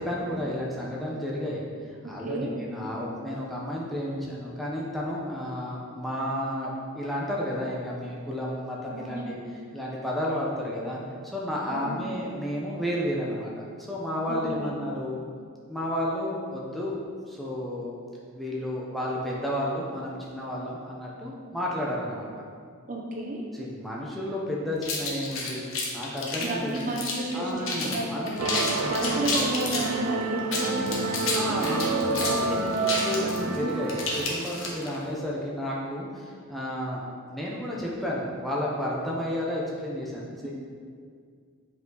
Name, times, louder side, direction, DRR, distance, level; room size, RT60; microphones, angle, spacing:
voice 1, 0.0-1.7 2.0-9.4 9.7-15.2 15.7-17.0 17.3-17.9 18.3-22.4 23.5-25.6 25.9-27.0 27.3-28.3 28.8-28.9 31.3-32.7 33.0-37.0 37.3-40.5, left 1 dB, ahead, -5 dB, 0.8 m, -32 dB
voice 2, 2.2-3.1 8.9-9.4 11.7-12.1 14.3-14.8 22.9-23.4 26.4-32.9 33.4-33.8 40.4-40.5, right 1 dB, 35° right, -1 dB, 0.8 m, -32 dB
sound 1, 24.8-27.3 27.6-28.0 28.3-29.9 30.4-35.0, left 3 dB, 65° left, 1.2 m, -30 dB
sound 2, 28.4-34.9, right 3 dB, 80° right, 0.6 m, -29 dB
7.6 x 5.3 x 4.0 m, 2.1 s
head